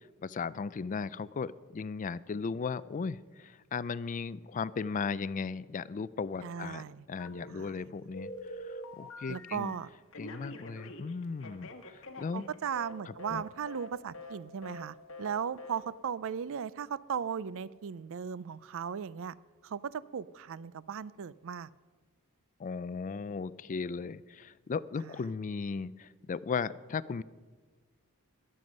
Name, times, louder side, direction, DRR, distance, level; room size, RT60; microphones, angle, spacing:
voice 1, 0.2-8.3 8.6-9.7 10.2-12.5 13.1-13.4 22.6-27.2, left 5 dB, 35° left, 18 dB, 0.4 m, -36 dB
voice 2, 6.4-7.1 7.5-7.9 9.3-9.9 12.3-19.4 19.6-21.7 25.0-25.2, right 7 dB, 65° right, 19 dB, 0.4 m, -37 dB
Telephone, 7.2-7.8 8.1-9.7 10.1-12.9 13.2-13.4 13.7-13.9 14.1-14.4 14.6-14.8 15.1-15.3 15.6-15.8, left 1 dB, 65° left, 1.4 m, -45 dB
21.5 x 7.8 x 5.3 m, 1.4 s
head